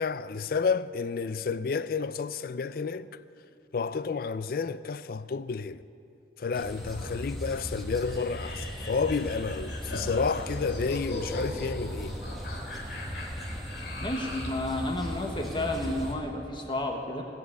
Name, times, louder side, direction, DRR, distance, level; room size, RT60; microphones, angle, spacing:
voice 1, 0.0-3.2 3.7-5.8 6.4-12.2, left 5 dB, 55° left, 0.4 m, -30 dB
sound 1, 6.5-16.1, equal, ahead, 1.5 m, -37 dB
sound 2, 8.0-14.6, left 2 dB, 80° left, 2.7 m, -40 dB
voice 2, 14.0-17.2, left 1 dB, 25° left, 1.4 m, -31 dB
18.5 x 7.5 x 8.2 m
head